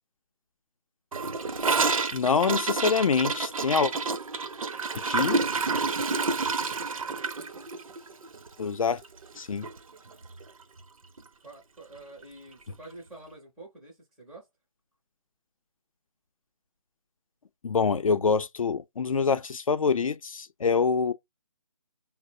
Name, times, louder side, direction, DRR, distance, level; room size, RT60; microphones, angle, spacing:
Gurgling / Toilet flush, 1.1-9.4 9.6-9.8 10.1-10.5 10.8-10.9 11.2-11.3 12.2-12.3, right 4 dB, 80° right, 0.6 m, -29 dB
voice 1, 2.1-3.9 4.9-5.4 8.6-9.0 9.4-9.7 17.6-21.1, left 5 dB, 75° left, 0.5 m, -25 dB
voice 2, 11.4-14.5, right 2 dB, ahead, 0.4 m, -47 dB
4.1 x 2.0 x 2.7 m
figure-of-eight pair, 155°, 18 cm